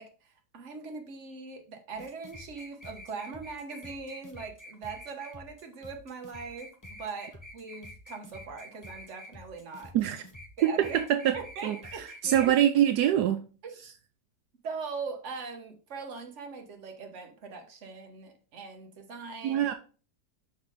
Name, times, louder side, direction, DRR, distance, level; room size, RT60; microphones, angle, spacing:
voice 1, 0.0-6.7 7.0-9.9 10.6-11.0 11.3-12.5 13.6-14.0 14.6-19.6, right 4 dB, 50° right, 1.4 m, -41 dB
sound 1, 1.9-12.5, left 1 dB, 15° left, 0.7 m, -48 dB
voice 2, 10.6-11.3 11.6-11.8 12.2-13.4 19.4-19.7, right 11 dB, 80° right, 1.1 m, -24 dB
5.9 x 4.3 x 4.9 m
omnidirectional pair, 1.7 m